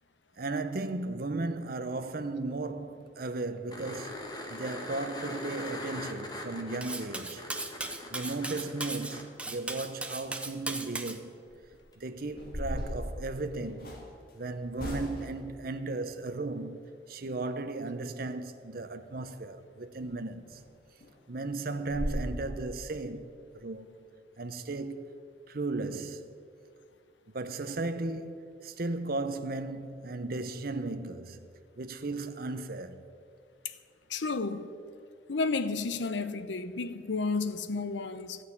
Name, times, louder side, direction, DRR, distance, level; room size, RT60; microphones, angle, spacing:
voice 1, 0.4-7.4 8.1-11.4 12.0-13.9 14.3-20.6 21.3-23.9 24.4-25.1 25.5-26.3 27.3-31.5 31.8-33.0, right 2 dB, 55° right, 0.8 m, -36 dB
sound 1, 3.7-9.2 11.9-12.0, left 1 dB, 25° left, 1.5 m, -41 dB
Cutlery silverware, 6.8-11.2, right 2 dB, 5° right, 0.7 m, -37 dB
sound 2, 11.5-11.8 12.3-14.1 14.8-15.4 19.9-20.1 20.5-20.6 21.0-21.1 21.5-21.6 21.9-22.2, equal, 55° left, 2.4 m, -36 dB
voice 2, 34.1-34.7 35.3-38.4, left 4 dB, 85° left, 0.7 m, -32 dB
14.0 x 6.4 x 9.7 m
head